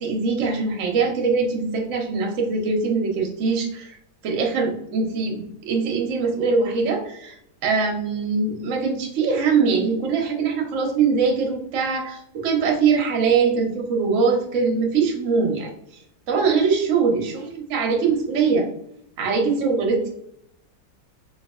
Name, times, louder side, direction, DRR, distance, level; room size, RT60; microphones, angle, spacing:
voice 1, 0.0-4.0 4.2-7.4 7.6-15.7 16.3-18.7 19.2-20.1, right 5 dB, 65° right, 0 dB, 0.7 m, -22 dB
4.4 x 2.4 x 2.4 m, 0.74 s
omnidirectional pair, 2.2 m